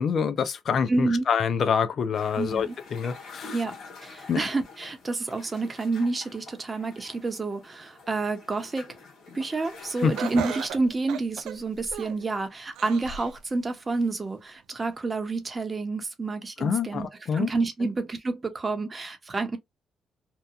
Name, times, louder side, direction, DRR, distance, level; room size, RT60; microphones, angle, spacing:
voice 1, 0.0-3.6 4.3-4.4 10.0-10.1 16.6-17.5, left 6 dB, 55° left, 0.4 m, -26 dB
voice 2, 0.9-1.2 2.4-2.7 3.5-3.7 4.0-8.9 9.3-17.1 17.3-19.6, right 3 dB, 25° right, 0.7 m, -29 dB
sound 1, 2.1-10.7, left 4 dB, 75° left, 1.3 m, -47 dB
Laughter, 10.2-12.3 12.8-13.4 13.9-14.0 14.9-15.0, right 7 dB, 85° right, 0.3 m, -36 dB
2.8 x 2.2 x 2.4 m
cardioid pair, 90°, 0 cm